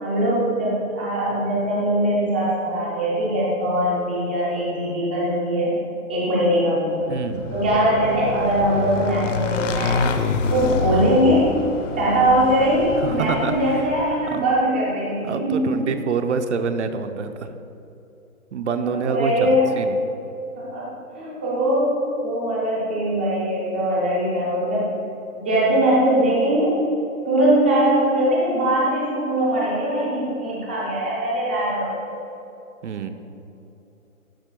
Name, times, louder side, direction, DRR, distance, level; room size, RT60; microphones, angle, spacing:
voice 1, 0.0-5.7 6.1-7.1 7.5-10.0 10.5-11.6 12.0-15.7 19.0-19.8 20.6-20.9 21.2-24.9 25.3-26.8 27.3-32.2, right 1 dB, 5° right, -6 dB, 0.5 m, -21 dB
Motorcycle / Engine, 7.1-14.4, left 5 dB, 60° left, 0.8 m, -27 dB
voice 2, 7.1-7.5 13.0-13.8 14.3-14.4 15.2-17.5 18.5-20.0 32.8-33.1, right 5 dB, 55° right, 8 dB, 0.8 m, -26 dB
12.5 x 10.5 x 2.3 m, 2.9 s
hypercardioid pair, 155°, 43 cm